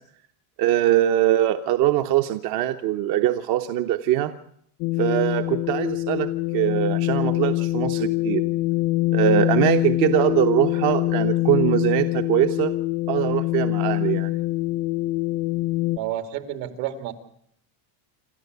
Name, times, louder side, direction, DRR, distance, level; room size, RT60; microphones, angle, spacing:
voice 1, 0.6-4.3 5.0-8.4 9.1-12.7 13.1-14.3, right 13 dB, 50° right, 7 dB, 1.0 m, -22 dB
sound 1, 4.8-16.0, left 18 dB, 70° left, 0.9 m, -24 dB
voice 2, 15.9-17.1, right 12 dB, 75° right, 7 dB, 2.9 m, -30 dB
28.0 x 13.0 x 8.2 m, 0.70 s
cardioid pair, 165°, 49 cm